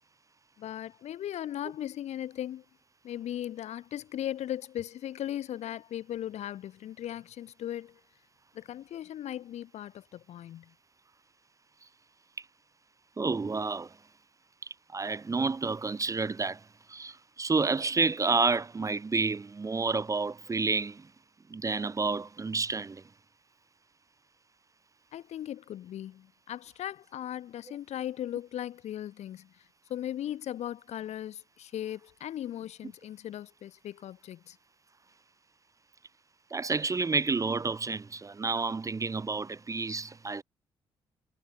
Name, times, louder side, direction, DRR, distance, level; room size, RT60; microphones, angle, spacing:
voice 1, 0.6-2.6 3.0-8.0 8.5-10.7 25.1-29.6 29.9-34.6, left 11 dB, 60° left, 1.0 m, -38 dB
voice 2, 13.2-13.9 14.9-16.6 16.9-21.1 21.5-23.0 36.5-40.4, right 4 dB, 25° right, 0.7 m, -30 dB
hypercardioid pair, 45°, 13 cm